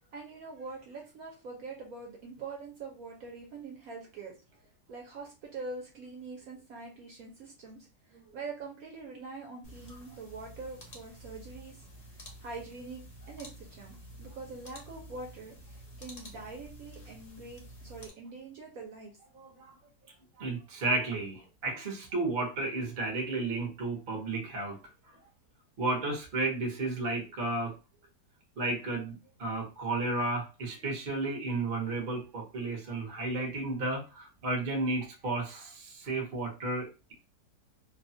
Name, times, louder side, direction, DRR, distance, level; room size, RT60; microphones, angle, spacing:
voice 1, 0.1-4.3 4.9-11.8 12.1-13.0 13.3-19.1, right 3 dB, 65° right, 0 dB, 1.0 m, -44 dB
sound 1, 9.6-18.1, equal, 45° left, 0.5 m, -50 dB
voice 2, 19.3-19.7 20.4-24.8 25.8-27.7 28.6-37.1, right 2 dB, 40° right, 0 dB, 0.8 m, -33 dB
2.7 x 2.2 x 2.6 m, 0.31 s
omnidirectional pair, 1.8 m